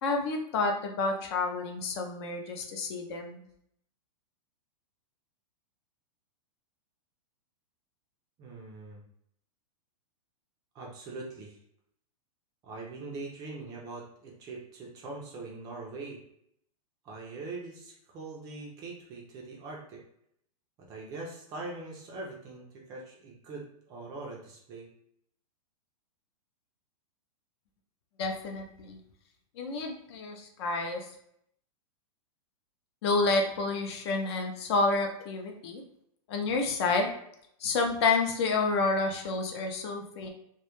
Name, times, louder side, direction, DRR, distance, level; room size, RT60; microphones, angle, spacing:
voice 1, 0.0-3.4 28.2-29.0 29.6-31.1 33.0-35.8 36.3-37.1 37.6-40.3, left 3 dB, 45° left, 3 dB, 0.4 m, -29 dB
voice 2, 8.4-9.0 10.7-11.6 12.6-16.2 17.0-20.0 20.9-24.9, right 3 dB, 20° right, -2 dB, 0.4 m, -42 dB
2.2 x 2.0 x 2.9 m, 0.72 s
hypercardioid pair, 150°, 19 cm